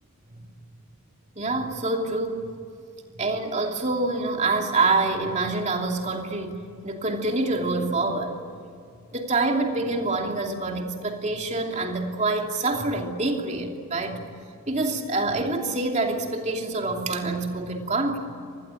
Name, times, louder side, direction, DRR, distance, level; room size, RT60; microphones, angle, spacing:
voice 1, 1.4-2.4 3.1-6.6 6.8-8.4 9.1-14.2 14.7-18.2, right 3 dB, 30° right, 2 dB, 2.8 m, -26 dB
26.0 x 20.5 x 9.0 m, 2.4 s
head